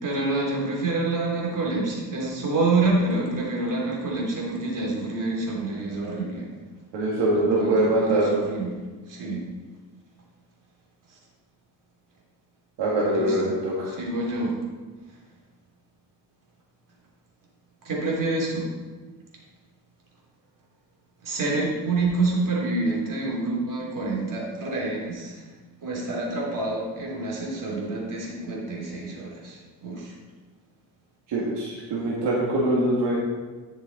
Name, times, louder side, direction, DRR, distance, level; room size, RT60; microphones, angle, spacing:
voice 1, 0.0-6.5 7.3-9.5 11.1-11.2 13.0-13.6 13.8-14.6 17.8-18.7 21.2-25.5 25.8-30.2, right 2 dB, 45° right, -3 dB, 3.3 m, -27 dB
voice 2, 6.9-8.2 12.8-13.9 31.3-33.2, right 1 dB, 70° right, -5 dB, 2.2 m, -23 dB
10.5 x 6.6 x 4.1 m, 1.3 s
cardioid pair, 95°, 45 cm